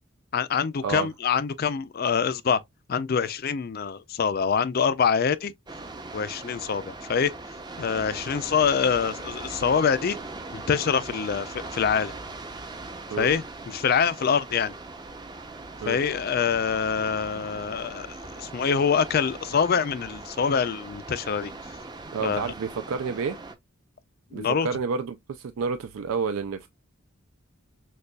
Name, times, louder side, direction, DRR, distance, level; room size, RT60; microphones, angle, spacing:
voice 1, 0.3-2.6 2.9-5.5 6.1-7.3 7.8-10.2 10.5-12.1 13.2-14.7 15.9-18.1 18.4-21.5 22.2-22.5 24.3-24.7, left 6 dB, 45° left, 0.4 m, -25 dB
sound 1, 5.7-23.5, right 3 dB, 20° right, 0.5 m, -40 dB
voice 2, 22.1-23.4 24.3-26.7, right 5 dB, 85° right, 0.4 m, -29 dB
6.5 x 2.3 x 2.2 m
head